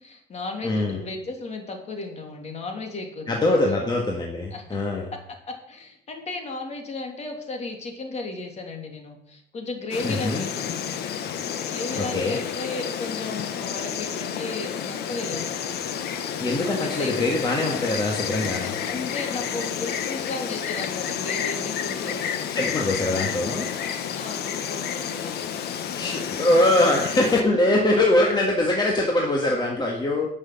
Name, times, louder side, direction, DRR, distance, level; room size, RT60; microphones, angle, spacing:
voice 1, 0.0-3.4 3.7-3.8 4.5-4.8 5.5-11.1 11.7-15.5 16.5-17.3 17.6-17.8 18.6-22.2 24.2-25.4 27.4-27.5 30.2-30.3, left 3 dB, 40° left, 3 dB, 3.1 m, -35 dB
voice 2, 0.6-1.0 3.3-5.1 10.0-10.4 12.0-12.4 16.4-18.7 22.5-23.7 26.0-30.3, left 1 dB, 25° left, 0 dB, 1.9 m, -23 dB
Insect, 9.9-27.4, left 8 dB, 70° left, 1.4 m, -30 dB
11.0 x 6.5 x 7.7 m, 0.73 s
cardioid pair, 110°, 17 cm